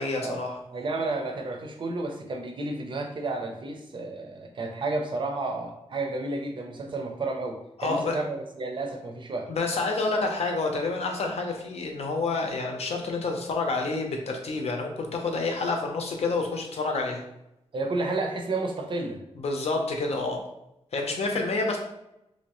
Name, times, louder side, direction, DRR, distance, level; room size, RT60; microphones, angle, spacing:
voice 1, 0.0-0.6 7.8-8.2 9.5-17.2 19.4-20.4 20.9-21.8, left 3 dB, 65° left, 2 dB, 0.6 m, -28 dB
voice 2, 0.7-9.5 17.7-19.2, right 2 dB, 45° right, 2 dB, 0.5 m, -31 dB
3.2 x 2.6 x 3.0 m, 0.85 s
wide cardioid pair, 160°, 11 cm